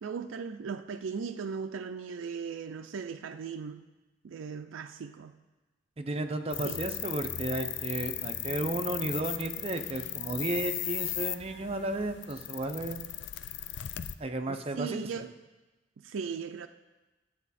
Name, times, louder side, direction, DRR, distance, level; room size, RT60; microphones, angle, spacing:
voice 1, 0.0-3.8 4.2-5.4 6.6-6.8 14.5-15.3 16.0-16.7, right 6 dB, 80° right, 0.4 m, -38 dB
voice 2, 6.0-13.0 14.2-15.2, right 2 dB, 30° right, 0.6 m, -33 dB
sound 1, 6.5-14.1, left 12 dB, 65° left, 0.4 m, -37 dB
12.0 x 8.0 x 4.2 m
head